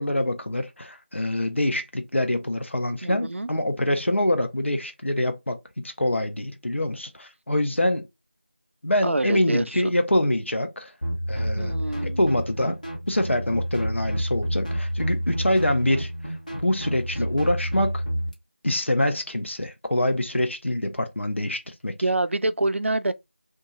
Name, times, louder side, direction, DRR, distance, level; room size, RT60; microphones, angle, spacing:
voice 1, 0.0-8.1 8.8-10.9 11.3-11.7 12.0-12.8 13.1-18.0 18.6-21.9, left 1 dB, 75° left, 0.7 m, -25 dB
voice 2, 3.0-3.5 9.0-9.9 11.5-12.2 22.0-23.1, right 2 dB, 75° right, 0.4 m, -26 dB
sound 1, 11.0-18.3, equal, 40° left, 0.9 m, -29 dB
2.8 x 2.3 x 2.9 m
figure-of-eight pair, 175°, 7 cm